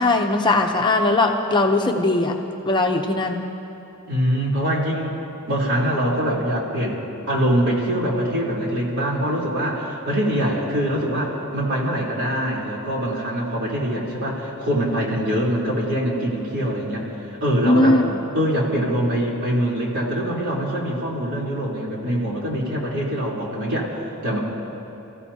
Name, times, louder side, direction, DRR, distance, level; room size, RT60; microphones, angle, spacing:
voice 1, 0.0-2.4 2.6-3.5 17.6-18.1, left 2 dB, 20° left, 2 dB, 0.8 m, -19 dB
voice 2, 4.1-5.2 5.5-17.1 17.4-18.0 18.3-24.4, equal, 60° right, -5 dB, 3.7 m, -23 dB
29.5 x 15.5 x 2.9 m, 3.0 s
head